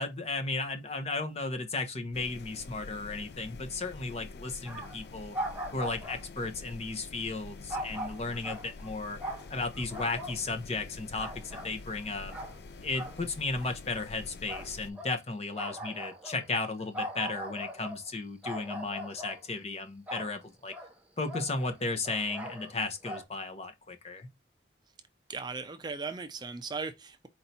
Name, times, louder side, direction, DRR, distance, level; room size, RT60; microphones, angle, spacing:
voice 1, 0.0-5.4 5.7-9.2 9.5-12.3 12.8-20.7 21.2-24.3, left 3 dB, 35° left, 0.8 m, -35 dB
sound 1, 2.1-14.9, left 3 dB, 65° left, 0.4 m, -47 dB
sound 2, 4.7-5.1 5.3-6.3 7.7-8.9 9.2-10.4 10.8-12.0 12.3-12.6 12.9-13.2 13.6-14.1 14.5-15.2 15.5-18.1 18.4-19.5 20.1-20.4 20.7-21.0 21.3-22.8 23.0-23.2, equal, 10° right, 1.0 m, -40 dB
voice 2, 25.3-27.3, right 4 dB, 25° right, 0.5 m, -37 dB
4.5 x 2.7 x 4.1 m
head